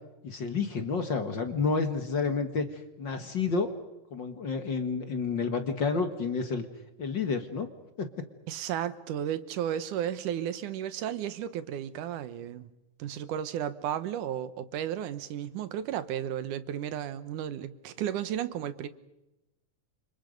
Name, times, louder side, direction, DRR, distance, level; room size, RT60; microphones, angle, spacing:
voice 1, 0.2-2.7 3.0-3.7 4.1-6.7 7.0-7.7 8.0-8.1, left 4 dB, 45° left, 2.0 m, -30 dB
voice 2, 8.5-12.7 13.0-18.9, right 10 dB, 90° right, 2.7 m, -33 dB
29.5 x 26.0 x 5.3 m
omnidirectional pair, 3.5 m